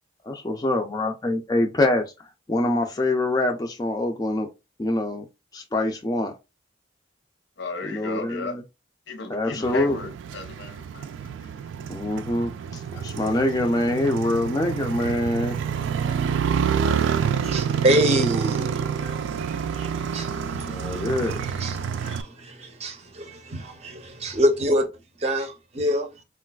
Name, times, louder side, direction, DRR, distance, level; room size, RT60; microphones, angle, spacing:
voice 1, 0.2-4.5 4.8-5.3 5.5-6.3 7.8-8.6 9.3-10.0 11.9-15.6 20.7-21.4, left 1 dB, 20° left, 0.3 m, -25 dB
voice 2, 7.6-8.6 9.1-11.9 12.6-13.3 13.6-14.1 16.0-16.2, left 3 dB, 80° left, 0.8 m, -37 dB
Motorcycle, 9.6-22.2, right 7 dB, 90° right, 0.3 m, -28 dB
voice 3, 17.0-24.9 25.2-26.1, right 1 dB, 35° right, 0.5 m, -27 dB
3.9 x 2.3 x 2.2 m
head